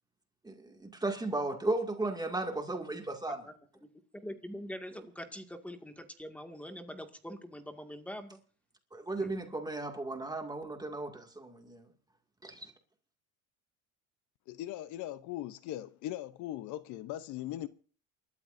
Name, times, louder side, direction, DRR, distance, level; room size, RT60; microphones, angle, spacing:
voice 1, 0.4-3.5 8.9-11.9 12.4-12.7, right 2 dB, 10° right, 2.2 m, -35 dB
voice 2, 4.1-8.4 9.2-9.3, equal, 5° left, 2.0 m, -44 dB
voice 3, 14.5-17.7, left 13 dB, 55° left, 0.8 m, -39 dB
28.5 x 13.0 x 2.6 m
supercardioid pair, 110°, 34 cm